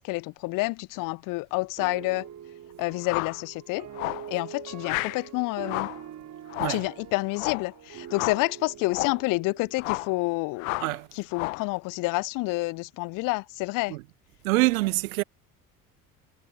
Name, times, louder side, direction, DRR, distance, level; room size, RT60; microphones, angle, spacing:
voice 1, 0.0-2.3 2.8-3.9 4.3-5.9 6.7-10.8 11.1-14.0, left 24 dB, 45° left, 0.6 m, -29 dB
sound 1, 1.8-10.9, right 10 dB, 40° right, 5.0 m, -44 dB
sound 2, 3.0-3.4 4.0-4.3 4.8-5.2 5.6-6.0 6.5-6.9 7.4-7.7 8.1-8.5 8.9-9.2 9.8-10.2 10.6-11.0 11.3-11.7, left 23 dB, 65° left, 1.3 m, -31 dB
voice 2, 14.4-15.2, right 21 dB, 65° right, 1.3 m, -25 dB
figure-of-eight pair, 55°, 44 cm